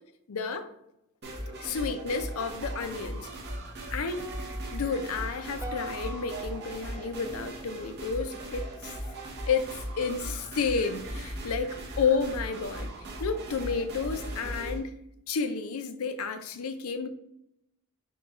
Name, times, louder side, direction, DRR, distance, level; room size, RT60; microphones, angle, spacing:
voice 1, 0.3-0.7 1.6-3.3 3.9-4.2 4.7-8.9 9.5-12.9 13.2-15.0 15.3-17.1, left 5 dB, 75° left, 0.5 m, -31 dB
sound 1, 1.2-14.8, right 1 dB, 50° right, 0.9 m, -38 dB
sound 2, 4.2-8.5, right 2 dB, 10° right, 0.5 m, -44 dB
4.8 x 2.3 x 3.6 m
head